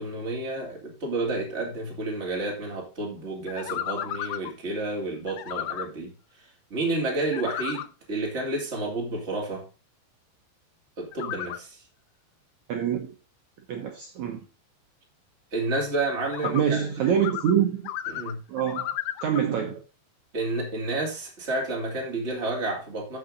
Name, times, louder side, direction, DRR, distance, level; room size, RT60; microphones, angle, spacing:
voice 1, 0.0-6.1 6.7-9.7 11.0-11.8 15.5-17.0 18.1-18.4 20.3-23.2, right 2 dB, 20° right, 2.7 m, -30 dB
sound 1, 3.5-4.5 5.3-5.9 7.1-7.9 11.1-11.6 16.2-16.6 17.1-17.5 17.8-19.4, left 12 dB, 80° left, 2.5 m, -33 dB
voice 2, 12.7-13.1 13.7-14.4 16.4-17.8 18.5-18.9 19.2-19.8, right 8 dB, 70° right, 1.9 m, -25 dB
13.5 x 5.0 x 3.9 m
omnidirectional pair, 4.5 m